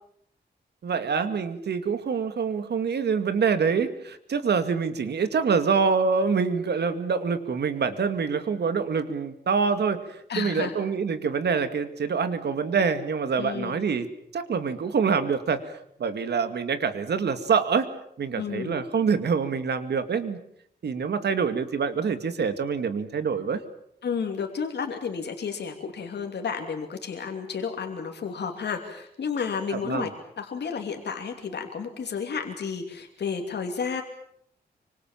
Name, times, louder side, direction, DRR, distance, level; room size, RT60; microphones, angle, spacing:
voice 1, 0.8-14.1 14.3-15.7 16.0-17.9 18.2-20.4 20.8-23.6 29.7-30.1, right 5 dB, 80° right, 9 dB, 2.3 m, -26 dB
voice 2, 10.3-10.7 13.4-13.8 18.3-18.8 24.0-30.1 30.4-34.0, left 6 dB, 85° left, 4 dB, 2.8 m, -31 dB
25.5 x 25.0 x 7.4 m, 0.70 s
wide cardioid pair, 120°, 17 cm